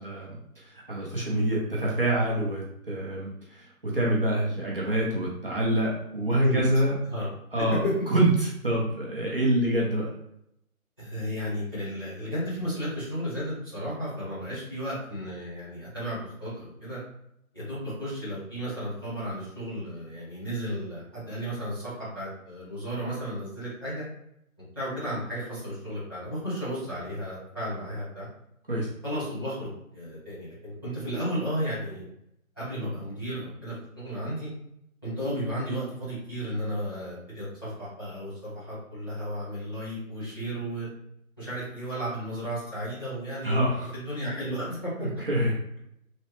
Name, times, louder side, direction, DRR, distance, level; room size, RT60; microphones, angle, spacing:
voice 1, 0.0-6.9 7.5-10.1 28.7-28.9 43.4-43.9 45.0-45.8, right 1 dB, 40° right, -5 dB, 0.7 m, -26 dB
voice 2, 7.6-7.9 11.0-17.0 17.5-24.0 24.7-28.3 29.0-32.0 32.6-34.5 35.0-40.9 41.4-45.1, equal, 15° left, -13 dB, 1.0 m, -33 dB
3.2 x 3.0 x 3.0 m, 0.76 s
figure-of-eight pair, 170°, 43 cm